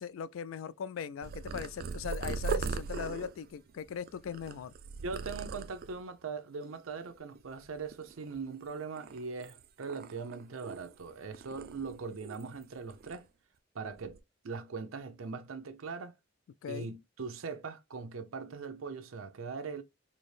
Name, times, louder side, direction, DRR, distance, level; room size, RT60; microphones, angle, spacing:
voice 1, 0.0-4.7 16.6-16.9, left 7 dB, 75° left, 0.3 m, -39 dB
Purr, 1.2-6.1 6.6-7.1 7.4-8.6 9.0-11.0 11.3-12.6 12.9-13.2 13.9-14.2, right 4 dB, 50° right, 0.3 m, -39 dB
voice 2, 5.0-13.3 13.7-14.2 14.4-16.1 16.7-19.8, right 4 dB, 85° right, 0.6 m, -41 dB
4.1 x 2.0 x 3.2 m
head